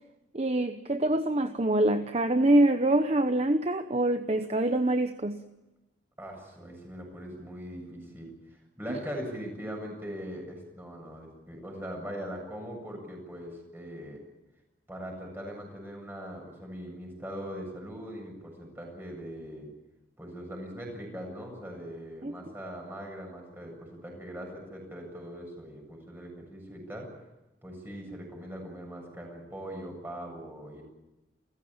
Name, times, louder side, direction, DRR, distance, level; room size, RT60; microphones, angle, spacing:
voice 1, 0.3-5.4 22.2-22.3, right 1 dB, 35° right, 8 dB, 0.9 m, -25 dB
voice 2, 6.2-14.2 14.9-19.7 20.2-27.1 27.6-30.8, equal, 10° right, 1 dB, 7.8 m, -41 dB
29.0 x 15.5 x 8.8 m, 1.0 s
head